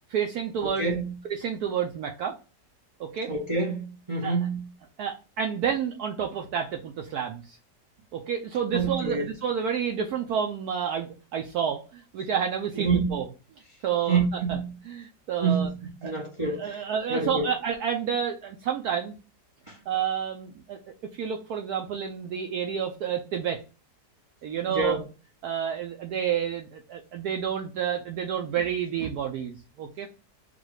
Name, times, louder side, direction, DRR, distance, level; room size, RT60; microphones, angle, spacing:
voice 1, 0.1-0.9 1.3-2.4 3.0-3.3 4.2-4.3 5.0-7.6 8.1-13.3 13.8-14.2 14.5-14.6 14.9-15.7 16.0-16.1 16.4-19.2 19.9-20.8 21.1-23.6 24.4-25.0 25.4-30.1, right 8 dB, 70° right, 1.0 m, -29 dB
voice 2, 0.6-1.1 3.3-4.7 8.7-9.3 12.8-13.1 14.1-14.7 15.4-15.7 16.0-16.8 17.1-17.5 19.7-19.8 24.7-25.0, right 4 dB, 45° right, 0.4 m, -27 dB
4.0 x 2.3 x 4.6 m
omnidirectional pair, 1.9 m